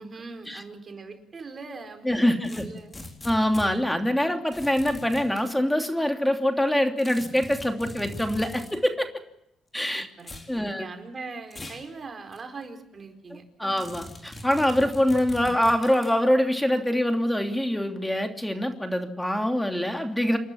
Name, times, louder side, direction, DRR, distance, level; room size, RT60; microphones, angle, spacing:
voice 1, 0.0-3.0 9.9-13.9, right 3 dB, 40° right, 6 dB, 4.5 m, -41 dB
voice 2, 2.0-2.6 3.2-9.1 9.7-10.1 10.5-10.9 13.6-20.4, equal, 5° left, 5 dB, 2.9 m, -24 dB
sound 1, 2.4-3.7 4.5-5.4 7.0-8.8 10.2-10.5 11.5-11.9 12.3-12.4 13.8-16.2, left 2 dB, 25° left, 4.3 m, -41 dB
28.5 x 12.0 x 9.9 m, 0.82 s
cardioid pair, 90°, 0 cm